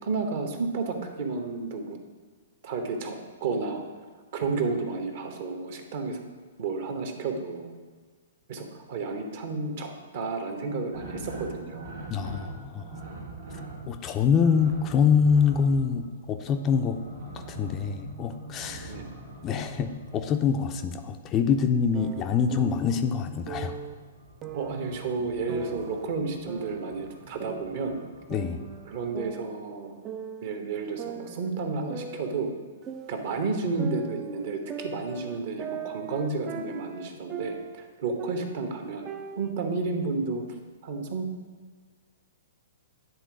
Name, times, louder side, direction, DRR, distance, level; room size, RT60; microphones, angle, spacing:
voice 1, 0.0-2.0 2.6-3.8 4.3-6.2 6.6-7.7 8.5-11.9 18.9-19.1 24.5-28.0 28.9-30.1 30.4-32.5 33.1-39.1 39.4-40.4 40.8-41.3, right 4 dB, 50° right, 4 dB, 1.0 m, -31 dB
sound 1, 10.9-20.9 22.4-29.3, right 1 dB, 70° right, 1.4 m, -44 dB
voice 2, 12.1-13.0 13.9-17.0 17.3-19.0 19.4-23.8 28.3-28.6, left 6 dB, 25° left, 6 dB, 0.4 m, -25 dB
sound 2, 21.9-23.0 23.5-23.9 24.4-26.0 26.5-28.0 28.3-29.8 30.0-30.6 31.0-33.4 33.8-37.9 38.2-39.5, right 6 dB, 25° right, 0.4 m, -40 dB
9.6 x 3.7 x 4.8 m, 1.5 s
figure-of-eight pair, 115°, 0 cm